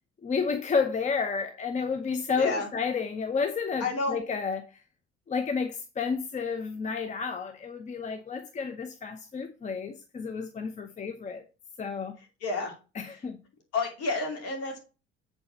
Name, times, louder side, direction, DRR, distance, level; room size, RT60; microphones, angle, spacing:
voice 1, 0.2-4.8 5.3-11.4 11.8-12.2 13.0-13.4, left 5 dB, 25° left, 0.8 m, -31 dB
voice 2, 2.4-2.7 3.8-4.2 12.2-12.7 13.1-13.2 13.7-14.8, left 3 dB, 50° left, 2.7 m, -30 dB
8.0 x 4.1 x 5.4 m
figure-of-eight pair, 60°, 32 cm